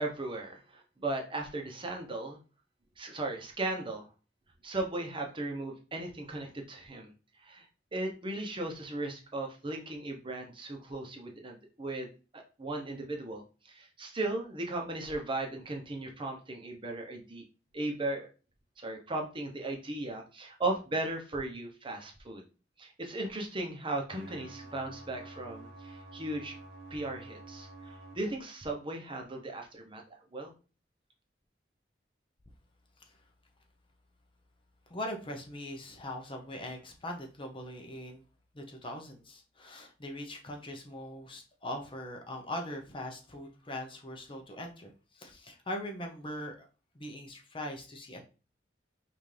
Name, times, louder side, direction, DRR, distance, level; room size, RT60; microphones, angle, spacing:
voice 1, 0.0-2.4 3.0-4.1 4.6-7.1 7.4-7.6 7.9-17.4 17.7-18.3 18.8-22.4 22.8-26.5 26.9-30.0 30.3-30.5, right 2 dB, 30° right, 2 dB, 0.9 m, -37 dB
sound 1, 24.1-28.1, right 2 dB, 70° right, 1.0 m, -49 dB
voice 2, 34.9-38.2 38.5-46.7 46.9-48.2, left 1 dB, 30° left, 3 dB, 0.8 m, -41 dB
5.6 x 2.7 x 3.3 m, 0.34 s
head